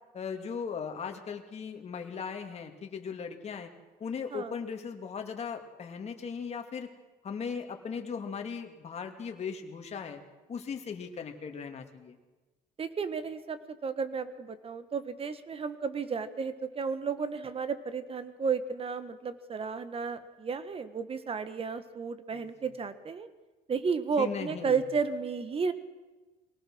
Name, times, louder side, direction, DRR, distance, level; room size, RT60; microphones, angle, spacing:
voice 1, 0.1-3.7 4.0-6.9 7.2-10.2 10.5-12.2 22.3-22.4 24.2-24.8, left 6 dB, 40° left, 4 dB, 2.4 m, -38 dB
voice 2, 12.8-23.3 23.7-25.7, right 5 dB, 35° right, 12 dB, 1.6 m, -33 dB
23.0 x 18.5 x 6.3 m, 1.2 s
cardioid pair, 110°, 17 cm